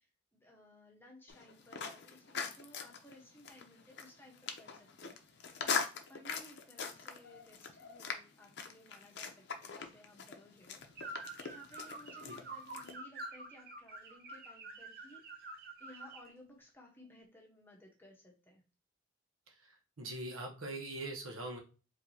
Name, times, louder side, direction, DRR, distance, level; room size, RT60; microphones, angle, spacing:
voice 1, 0.0-5.8 6.1-15.3 15.8-18.6, left 1 dB, 10° left, -1 dB, 1.0 m, -59 dB
sound 1, 1.3-12.9, left 5 dB, 55° left, 0.6 m, -42 dB
sound 2, 11.0-16.3, right 2 dB, 45° right, 0.7 m, -47 dB
voice 2, 19.5-21.6, right 2 dB, 85° right, 3 dB, 1.0 m, -43 dB
4.7 x 2.7 x 2.7 m, 0.34 s
head